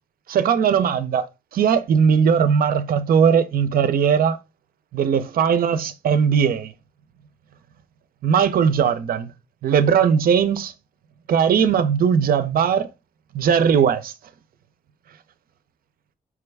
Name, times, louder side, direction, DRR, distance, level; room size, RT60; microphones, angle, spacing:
voice 1, 0.3-1.3 1.5-4.4 4.9-6.7 8.2-9.3 9.6-10.7 11.3-12.9 13.3-14.1, right 7 dB, 75° right, 0.4 m, -19 dB
4.6 x 2.3 x 3.3 m
cardioid pair, 65°, 15 cm